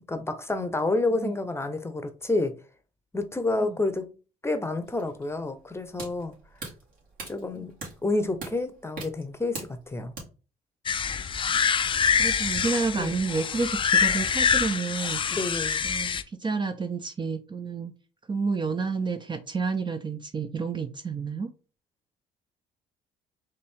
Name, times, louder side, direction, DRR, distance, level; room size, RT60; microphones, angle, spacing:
voice 1, 0.1-2.6 3.1-4.1 4.4-6.3 7.3-7.7 8.0-10.1 13.0-13.1 15.3-15.8, left 2 dB, 15° left, 0.8 m, -29 dB
sound 1, 4.8-10.2, right 3 dB, 55° right, 2.2 m, -42 dB
sound 2, 10.9-16.2, left 6 dB, 30° left, 0.4 m, -25 dB
voice 2, 12.2-15.2 15.8-17.9 18.3-21.5, right 4 dB, 25° right, 0.5 m, -30 dB
4.2 x 2.6 x 3.5 m
hypercardioid pair, 60°, 18 cm